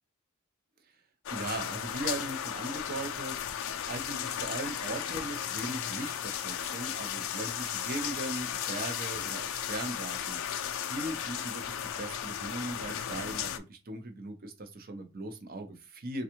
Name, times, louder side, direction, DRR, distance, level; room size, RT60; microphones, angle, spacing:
sound 1, 1.3-13.6, left 9 dB, 65° left, 0.3 m, -35 dB
voice 1, 1.3-16.2, right 2 dB, 40° right, 5 dB, 0.6 m, -39 dB
3.5 x 2.3 x 2.8 m, 0.30 s
head